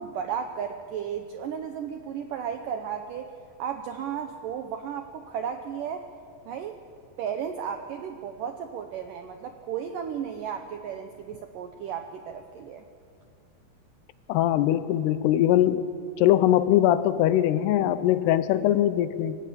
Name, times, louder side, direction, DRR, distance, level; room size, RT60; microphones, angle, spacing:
voice 1, 0.0-3.3 3.6-6.1 6.5-6.8 7.2-12.8, right 8 dB, 80° right, 6 dB, 1.9 m, -34 dB
voice 2, 14.3-15.9 16.2-19.4, left 12 dB, 80° left, 13 dB, 2.7 m, -21 dB
25.0 x 17.0 x 8.7 m, 2.4 s
omnidirectional pair, 5.1 m